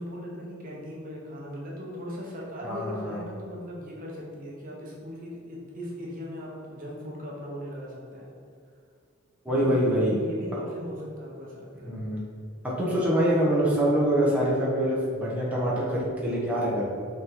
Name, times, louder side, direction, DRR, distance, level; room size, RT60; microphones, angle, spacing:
voice 1, 0.0-8.3 9.5-12.0, equal, 40° right, -4 dB, 1.2 m, -39 dB
voice 2, 2.6-3.2 9.4-10.2 11.8-12.2 12.8-16.8, right 1 dB, 5° right, -6 dB, 1.2 m, -25 dB
6.3 x 3.8 x 4.7 m, 2.3 s
head